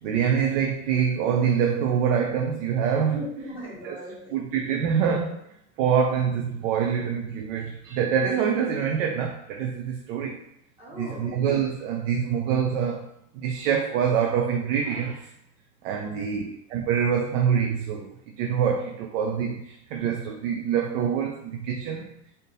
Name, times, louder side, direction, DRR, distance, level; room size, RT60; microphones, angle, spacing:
voice 1, 0.0-3.2 3.8-4.0 4.3-5.4 5.8-10.4 10.9-13.1 13.3-15.3 15.8-22.1, right 7 dB, 55° right, 2 dB, 0.5 m, -25 dB
voice 2, 3.1-4.3 10.8-11.4 15.9-16.4, left 1 dB, 10° right, -8 dB, 0.9 m, -38 dB
3.6 x 2.7 x 3.8 m, 0.78 s
supercardioid pair, 165°, 46 cm